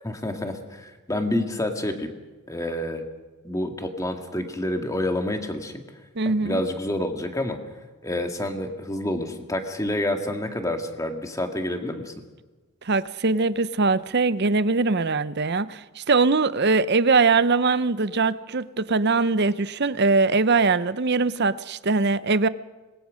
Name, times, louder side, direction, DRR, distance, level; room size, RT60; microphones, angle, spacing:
voice 1, 0.0-2.1 2.5-3.0 3.4-5.7 6.3-7.6 8.0-12.1, left 1 dB, 15° left, 1.9 m, -28 dB
voice 2, 6.2-6.6 12.9-22.5, right 4 dB, 50° right, 0.7 m, -22 dB
26.0 x 21.0 x 6.4 m
head